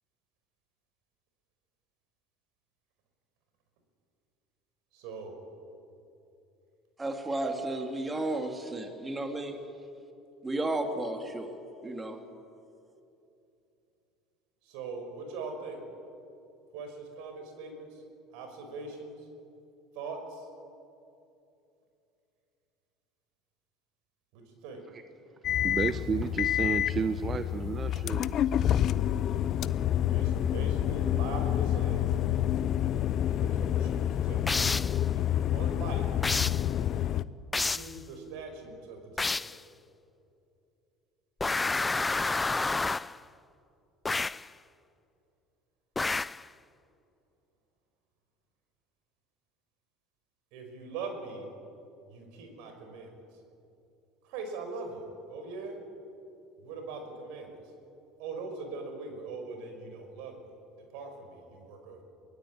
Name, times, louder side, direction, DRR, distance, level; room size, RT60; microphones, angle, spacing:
voice 1, 4.9-5.3 14.6-15.8 16.7-18.0 18.3-19.2 19.9-20.5 24.3-24.8 30.1-32.1 33.2-34.4 35.1-36.1 37.6-39.3 50.5-51.5 52.1-53.1 54.2-55.8 56.6-57.6 58.2-60.4 60.9-62.0, right 3 dB, 70° right, 5 dB, 5.3 m, -41 dB
voice 2, 7.0-9.6 10.4-11.6 11.8-12.2, right 2 dB, 20° right, 5 dB, 2.5 m, -33 dB
sound 1, 25.4-37.2, left 11 dB, 50° left, 0.7 m, -28 dB
voice 3, 25.6-28.3, right 6 dB, 35° right, 11 dB, 0.9 m, -32 dB
sound 2, 34.5-35.0 36.2-36.7 37.5-38.0 39.2-39.6 41.4-43.2 44.0-44.5 46.0-46.4, left 3 dB, 15° left, 0.4 m, -29 dB
23.5 x 17.5 x 8.7 m, 2.8 s
hypercardioid pair, 80°, 0 cm